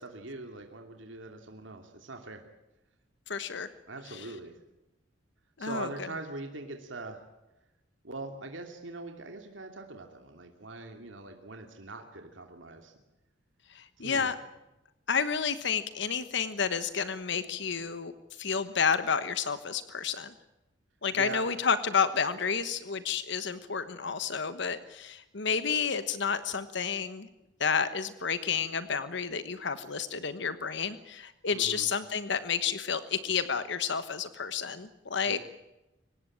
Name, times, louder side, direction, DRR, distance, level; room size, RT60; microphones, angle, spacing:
voice 1, 0.0-2.4 3.9-4.6 5.6-7.2 8.0-12.9 14.0-14.3 21.1-21.4 31.5-31.9 35.2-35.4, right 2 dB, 80° right, 4 dB, 2.8 m, -42 dB
voice 2, 3.3-3.7 4.1-4.3 5.6-5.9 13.7-14.3 15.1-18.1 18.4-20.3 21.0-27.3 27.6-35.4, left 6 dB, 65° left, 12 dB, 1.2 m, -30 dB
25.0 x 19.0 x 8.7 m, 0.97 s
head